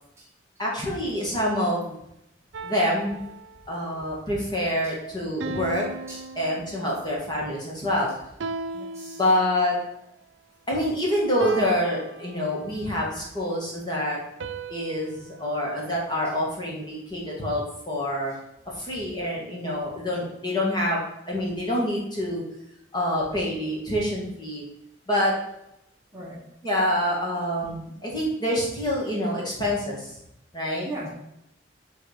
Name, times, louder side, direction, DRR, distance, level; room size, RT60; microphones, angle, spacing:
voice 1, 0.6-2.0 2.6-3.2 3.7-5.9 6.4-8.1 9.2-9.8 10.7-14.2 14.7-18.3 18.7-22.4 22.9-24.7 25.1-25.4 26.6-30.2 30.5-30.9, left 1 dB, 20° left, -3 dB, 2.1 m, -26 dB
sound 1, 2.5-4.0 5.4-7.2 8.4-9.8 11.4-12.9 14.4-16.6, right 2 dB, 70° right, 0.5 m, -38 dB
voice 2, 8.7-9.2 18.9-19.0 26.1-26.4 30.8-31.1, right 1 dB, 15° right, -5 dB, 1.3 m, -37 dB
9.0 x 3.9 x 5.1 m, 0.83 s
head